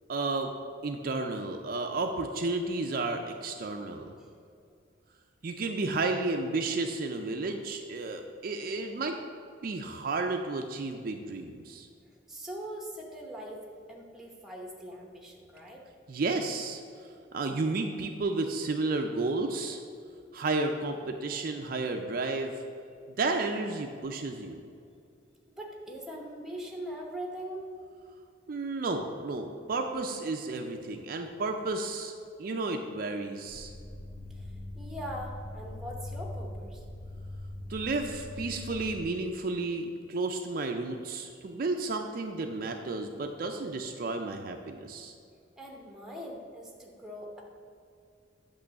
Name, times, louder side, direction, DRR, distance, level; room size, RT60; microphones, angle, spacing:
voice 1, 0.1-0.5 0.8-4.2 5.4-9.2 9.6-11.9 16.1-16.8 17.3-19.8 20.3-22.5 23.2-24.6 28.5-32.1 32.4-33.7 37.7-45.1, right 3 dB, 50° right, 4 dB, 0.4 m, -32 dB
voice 2, 12.3-15.9 25.6-27.6 34.3-36.8 45.6-47.4, right 1 dB, 5° right, -1 dB, 0.9 m, -41 dB
sound 1, 33.5-39.0, left 1 dB, 50° left, 1.1 m, -41 dB
8.4 x 3.1 x 6.3 m, 2.4 s
head